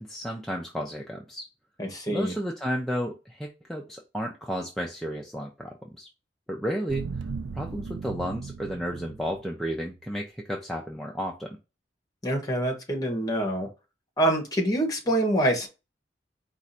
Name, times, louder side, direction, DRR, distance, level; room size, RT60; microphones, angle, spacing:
voice 1, 0.1-1.5 2.1-6.1 6.5-7.0 7.5-11.6, equal, ahead, 0.5 m, -32 dB
voice 2, 1.8-2.3 12.2-13.7 14.2-15.7, right 1 dB, 20° left, 1.3 m, -25 dB
sound 1, 6.9-9.8 10.1-10.2, right 4 dB, 80° right, 0.4 m, -37 dB
4.7 x 2.5 x 4.1 m
head